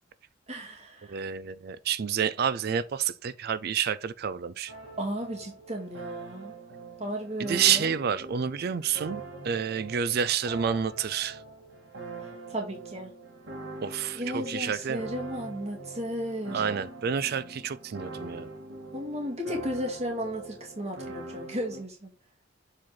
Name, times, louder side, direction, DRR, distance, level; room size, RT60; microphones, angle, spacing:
voice 1, 0.5-1.2 5.0-6.6 7.0-8.0 10.0-10.2 12.5-13.1 14.1-16.7 18.9-22.1, equal, 35° right, 2.1 m, -34 dB
voice 2, 1.1-4.7 7.5-9.2 9.5-11.4 13.8-14.2 14.5-15.0 16.5-18.5, right 8 dB, 55° right, 0.4 m, -28 dB
sound 1, 4.7-21.8, right 3 dB, 70° right, 2.4 m, -43 dB
7.6 x 4.3 x 3.8 m
head